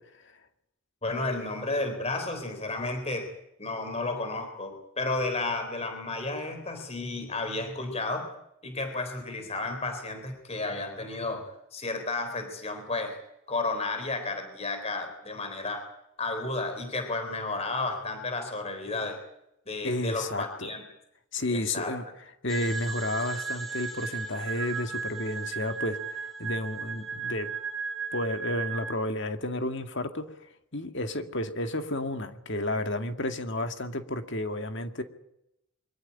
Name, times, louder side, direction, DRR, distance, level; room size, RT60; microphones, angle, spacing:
voice 1, 1.0-3.3 3.6-8.3 8.6-13.2 13.5-15.9 16.2-19.2 19.7-20.8 21.5-21.9, left 2 dB, 30° left, 7 dB, 3.8 m, -32 dB
voice 2, 19.8-20.7 21.3-22.0 22.4-27.5 28.1-30.2 30.7-35.0, left 1 dB, 55° left, 7 dB, 2.1 m, -31 dB
sound 1, 22.5-28.9, right 5 dB, ahead, 5.1 m, -35 dB
24.0 x 14.5 x 9.8 m, 0.81 s
head